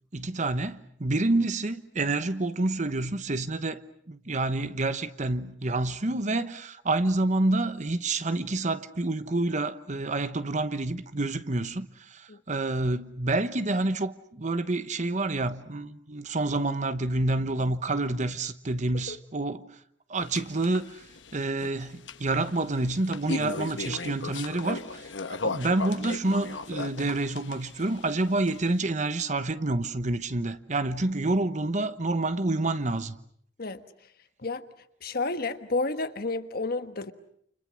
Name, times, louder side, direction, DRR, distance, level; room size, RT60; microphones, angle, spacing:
voice 1, 0.1-19.7 20.1-21.1 21.3-33.2, right 2 dB, 40° right, 1.1 m, -28 dB
sound 1, 20.2-28.8, left 3 dB, 75° left, 1.2 m, -37 dB
voice 2, 35.0-37.1, left 3 dB, 55° left, 1.4 m, -30 dB
30.0 x 28.5 x 6.4 m
head